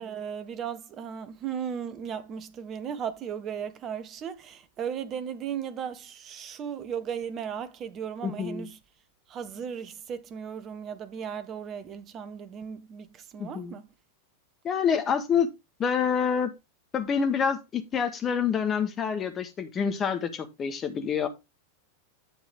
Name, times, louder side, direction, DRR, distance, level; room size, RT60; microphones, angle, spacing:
voice 1, 0.0-8.8 9.3-13.9, right 8 dB, 30° right, 1.4 m, -36 dB
voice 2, 8.2-8.7 13.4-13.8 14.6-15.5 15.8-16.5 16.9-21.3, left 7 dB, 25° left, 1.9 m, -27 dB
10.5 x 7.1 x 3.6 m
figure-of-eight pair, 90°, 0 cm